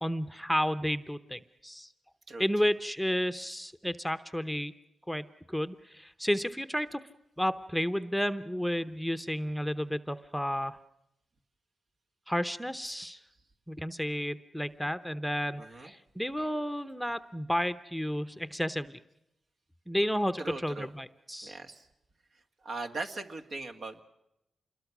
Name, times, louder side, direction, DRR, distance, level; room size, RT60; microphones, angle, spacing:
voice 1, 0.0-1.9 2.4-4.7 5.1-7.0 7.4-10.8 12.3-13.2 13.7-19.0 19.9-21.6, equal, ahead, 11 dB, 0.9 m, -32 dB
voice 2, 2.3-2.7 15.6-15.9 20.4-20.9 21.4-21.8 22.6-24.0, right 3 dB, 65° right, 5 dB, 2.1 m, -39 dB
27.0 x 21.5 x 6.1 m, 0.85 s
cardioid pair, 80°, 0 cm